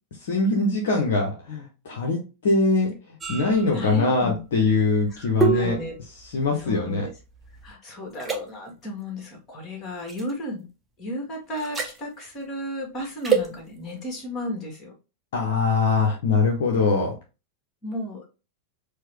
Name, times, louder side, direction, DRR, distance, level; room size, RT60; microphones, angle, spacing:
voice 1, 0.2-5.8 6.3-7.1 15.3-17.2, left 3 dB, 60° left, 1 dB, 0.8 m, -23 dB
sound 1, 3.2-7.7 8.1-8.4 10.1-10.3 11.6-12.0 13.2-13.5, right 6 dB, 15° right, 0.8 m, -28 dB
voice 2, 3.7-4.7 5.1-6.0 6.6-7.1 7.6-10.7 11.0-14.9 17.8-18.2, left 1 dB, 25° left, 1 dB, 1.7 m, -34 dB
4.5 x 2.2 x 3.1 m, 0.30 s
figure-of-eight pair, 90°, 0 cm